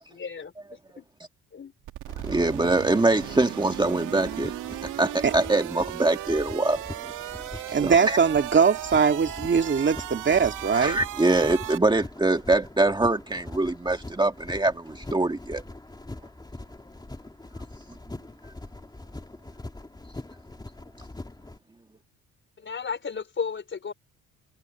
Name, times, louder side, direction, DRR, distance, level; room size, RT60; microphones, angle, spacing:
voice 1, 0.1-1.1 1.5-1.7 22.6-23.9, left 6 dB, 40° left, 4.6 m, -34 dB
sound 1, 1.8-11.8, right 14 dB, 90° right, 2.6 m, -36 dB
sound 2, 2.1-21.6, left 2 dB, 15° left, 2.9 m, -43 dB
voice 2, 2.2-4.5 4.8-6.8 7.5-8.2 10.7-15.6, right 2 dB, 15° right, 1.9 m, -24 dB
voice 3, 7.7-11.0, right 6 dB, 40° right, 2.4 m, -21 dB
cardioid pair, 90°, 30 cm